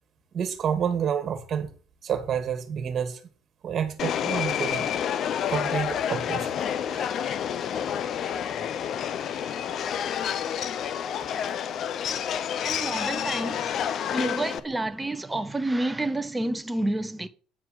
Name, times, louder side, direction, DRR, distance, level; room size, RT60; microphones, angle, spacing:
voice 1, 0.3-1.7 2.0-3.2 3.6-4.9 5.5-6.6 6.9-7.1, right 8 dB, 45° right, 2.1 m, -29 dB
Subway metro underground, 4.0-14.6, left 9 dB, 55° left, 0.8 m, -29 dB
voice 2, 12.7-13.8 14.1-17.3, right 2 dB, 10° right, 1.3 m, -29 dB
9.8 x 4.6 x 7.6 m
supercardioid pair, 90°, 0 cm